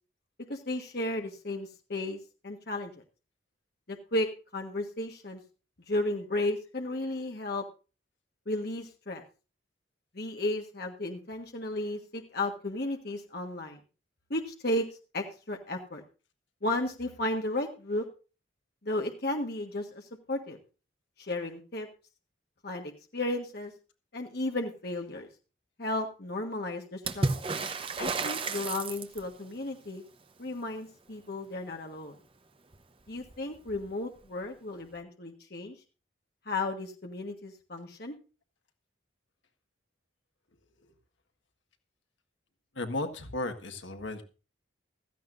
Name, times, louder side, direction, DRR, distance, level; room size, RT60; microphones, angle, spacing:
voice 1, 0.5-3.0 3.9-4.3 4.5-5.4 5.9-7.6 8.5-9.2 10.1-13.8 14.3-14.9 15.1-16.0 16.6-18.0 18.8-20.0 20.3-20.6 21.2-21.9 22.6-23.7 24.1-25.3 25.8-27.4 28.0-30.0 30.4-32.2 33.1-35.7 36.4-38.2, left 1 dB, 50° left, 3 dB, 1.5 m, -34 dB
Water / Splash splatter, 27.0-29.4 32.7-32.8 33.1-33.9 34.9-35.0, right 3 dB, 25° right, 0.9 m, -32 dB
voice 2, 42.7-44.2, left 2 dB, 70° left, 6 dB, 1.7 m, -35 dB
16.0 x 14.0 x 2.6 m, 0.34 s
head